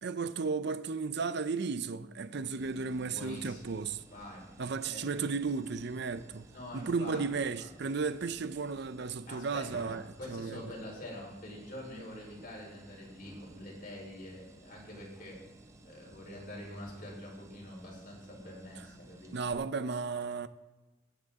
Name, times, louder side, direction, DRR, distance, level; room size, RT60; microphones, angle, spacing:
voice 1, 0.0-4.0 4.6-6.5 6.7-10.0 10.3-10.6 19.3-20.5, right 4 dB, 60° right, 0.6 m, -34 dB
sound 1, 2.6-19.5, right 1 dB, 15° right, 0.6 m, -56 dB
voice 2, 3.0-3.7 4.1-4.4 4.8-5.0 6.5-7.2 7.6-7.7 9.3-15.4 15.8-19.3, left 1 dB, 50° left, 4.1 m, -45 dB
16.0 x 8.0 x 3.6 m
head